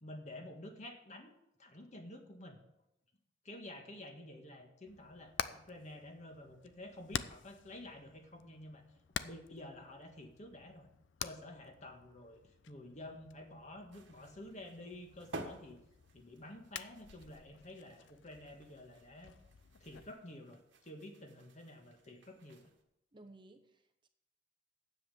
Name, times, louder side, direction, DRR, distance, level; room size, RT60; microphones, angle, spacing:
voice 1, 0.0-1.3 1.6-2.6 3.4-8.8 9.2-10.9 11.2-12.4 12.7-15.8 16.1-19.3 19.8-22.7, left 1 dB, 40° left, 4 dB, 1.7 m, -50 dB
Hammer, 4.9-20.1, left 8 dB, 75° left, 0.5 m, -48 dB
sound 1, 13.9-22.8, right 2 dB, 80° right, 1.6 m, -53 dB
voice 2, 23.1-24.1, right 2 dB, 25° right, 7 dB, 0.8 m, -58 dB
9.8 x 7.6 x 7.0 m, 0.81 s
head